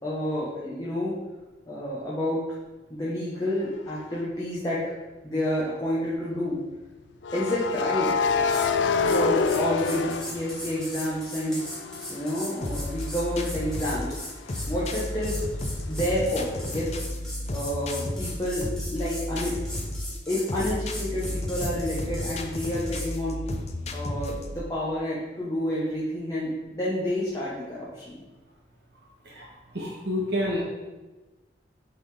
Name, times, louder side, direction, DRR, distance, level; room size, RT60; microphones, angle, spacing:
voice 1, 0.0-1.1 1.7-2.4 2.9-4.9 5.2-6.6 7.3-8.3 9.1-14.2 14.7-15.4 15.9-16.9 17.5-19.6 20.3-23.4 23.9-28.2, left 1 dB, 20° left, -7 dB, 1.2 m, -29 dB
sound 1, 3.9-4.2 7.2-11.1 11.5-15.1, left 5 dB, 85° left, 0.4 m, -28 dB
sound 2, 8.2-8.7 9.0-23.1, left 1 dB, 5° left, 1.7 m, -39 dB
sound 3, 12.6-24.6, left 1 dB, 40° left, 0.6 m, -33 dB
voice 2, 29.2-30.6, left 1 dB, 65° right, -5 dB, 1.7 m, -29 dB
6.2 x 4.1 x 5.0 m, 1.2 s
head